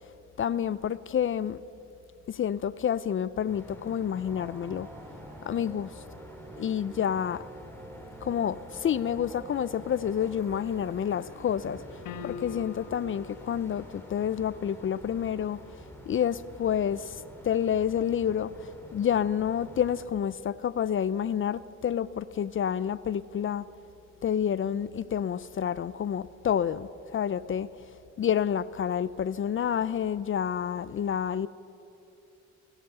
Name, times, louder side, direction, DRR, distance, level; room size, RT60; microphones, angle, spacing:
voice 1, 0.4-1.6 2.3-4.9 5.4-5.9 6.6-7.4 8.2-11.8 12.2-15.6 16.1-23.6 24.2-27.7 28.2-31.5, left 9 dB, 45° left, 0.5 m, -29 dB
sound 1, 3.5-20.1, equal, 10° left, 4.1 m, -48 dB
sound 2, 4.3-14.1, right 2 dB, 10° right, 1.3 m, -50 dB
sound 3, 12.1-13.1, left 6 dB, 90° left, 1.2 m, -40 dB
25.0 x 17.0 x 6.8 m
cardioid pair, 90°, 30 cm